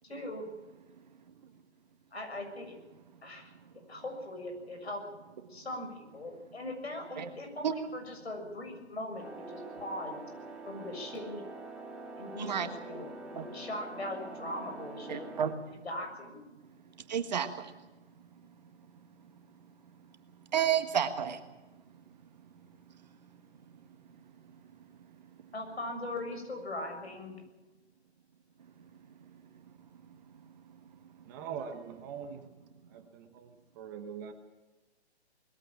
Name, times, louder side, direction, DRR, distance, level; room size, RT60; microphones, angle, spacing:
voice 1, 0.0-0.4 2.1-2.8 3.2-3.5 3.9-5.0 5.5-10.2 10.7-11.4 12.2-13.0 13.3-15.3 15.8-16.4 25.5-27.3, left 1 dB, 65° left, 4 dB, 7.1 m, -40 dB
sound 1, 9.2-15.5, right 2 dB, ahead, 2.6 m, -45 dB
voice 2, 12.4-12.7 13.4-13.5 15.1-15.5 17.1-17.7 20.5-21.4, right 8 dB, 40° right, 9 dB, 1.6 m, -30 dB
voice 3, 31.2-32.4 32.9-34.3, right 7 dB, 20° right, 7 dB, 1.1 m, -42 dB
21.0 x 15.5 x 8.8 m, 1.1 s
figure-of-eight pair, 140°, 34 cm